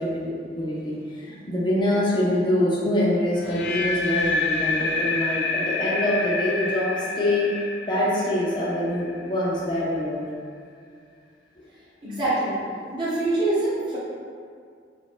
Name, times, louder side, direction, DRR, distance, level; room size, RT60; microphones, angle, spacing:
voice 1, 0.0-7.5 7.9-10.3, left 1 dB, 25° left, -6 dB, 0.6 m, -25 dB
sound 1, 3.4-9.4, left 3 dB, 75° left, 0.4 m, -28 dB
voice 2, 12.0-12.6 12.9-14.0, right 2 dB, 25° right, -13 dB, 0.8 m, -24 dB
3.0 x 2.5 x 3.6 m, 2.2 s
head